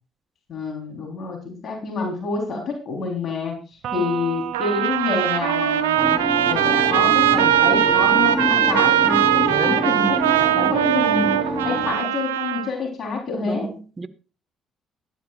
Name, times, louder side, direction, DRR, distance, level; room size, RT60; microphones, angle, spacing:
voice 1, 0.5-11.3 11.6-13.7, left 4 dB, 55° left, 3.9 m, -28 dB
Electric guitar, 3.8-7.4, right 10 dB, 65° right, 1.7 m, -35 dB
Trumpet, 4.5-12.7, right 12 dB, 90° right, 0.6 m, -20 dB
sound 1, 5.9-11.9, equal, ahead, 4.3 m, -27 dB
voice 2, 9.5-9.9 10.5-10.8 13.4-14.1, right 3 dB, 30° right, 1.4 m, -31 dB
18.0 x 11.5 x 2.5 m
hypercardioid pair, 50°, 0 cm